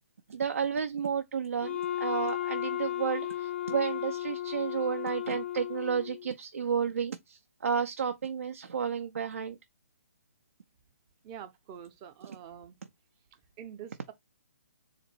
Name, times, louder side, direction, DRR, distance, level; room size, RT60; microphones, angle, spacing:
voice 1, 0.3-9.6 12.2-12.4, right 7 dB, 65° right, 0.5 m, -32 dB
Wind instrument woodwind instrument, 1.6-6.3, left 12 dB, 50° left, 0.5 m, -34 dB
voice 2, 11.2-12.7 13.6-14.1, right 9 dB, 25° right, 0.7 m, -46 dB
3.9 x 2.5 x 4.3 m
figure-of-eight pair, 135°, 8 cm